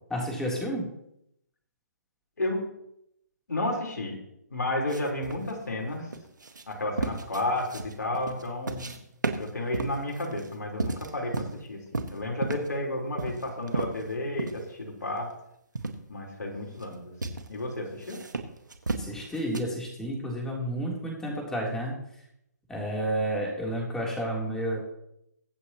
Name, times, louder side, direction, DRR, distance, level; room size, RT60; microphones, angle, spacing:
voice 1, 0.1-0.9 19.0-22.0 22.7-24.8, right 1 dB, 5° left, -2 dB, 3.4 m, -31 dB
voice 2, 3.5-4.2 4.5-6.1 6.7-9.0 9.4-15.3 16.1-18.2, left 1 dB, 80° left, 0 dB, 4.1 m, -32 dB
sound 1, 4.9-9.0 9.2-11.6 11.9-12.8 13.2-14.7 15.0-15.1 15.7-16.0 16.6-16.9 17.2-17.5 18.0-19.6, right 3 dB, 90° right, 1.7 m, -33 dB
23.0 x 8.4 x 3.0 m, 0.78 s
hypercardioid pair, 145°, 10 cm